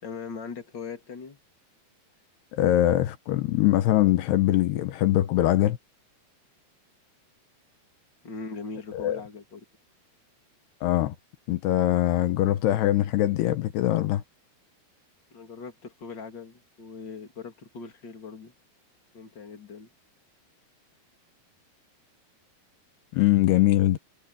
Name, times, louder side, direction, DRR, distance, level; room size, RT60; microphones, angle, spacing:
voice 1, 0.0-1.4 8.2-9.6 15.3-18.5 19.1-19.9, left 5 dB, 30° left, 3.5 m, -40 dB
voice 2, 2.5-5.8 8.9-9.2 10.8-11.2 11.5-14.2 23.1-24.0, left 14 dB, 80° left, 3.1 m, -22 dB
omnidirectional pair, 4.7 m